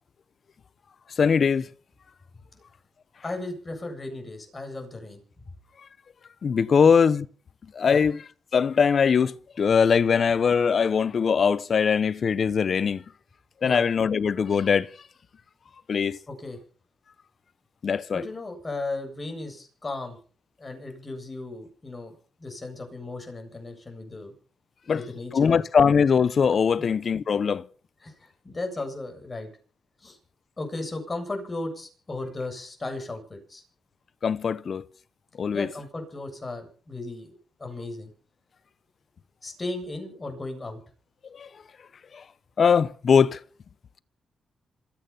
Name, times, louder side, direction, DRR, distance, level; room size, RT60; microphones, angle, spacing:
voice 1, 1.2-1.7 6.4-7.2 7.7-8.2 8.5-13.0 13.6-14.9 15.9-16.2 17.8-18.2 24.9-25.0 25.3-27.6 34.2-34.8 35.4-35.7 41.3-41.5 42.1-42.2 42.6-43.4, left 6 dB, 55° left, 0.9 m, -21 dB
voice 2, 3.2-5.2 6.8-6.9 7.8-8.0 13.6-13.8 16.3-16.6 18.1-20.2 20.6-22.1 22.4-24.3 24.8-25.6 28.0-29.5 30.0-30.2 30.6-33.6 35.5-37.3 37.6-38.1 39.4-40.8, left 2 dB, 30° left, 7.8 m, -35 dB
27.5 x 9.2 x 5.7 m
cardioid pair, 70°, 0 cm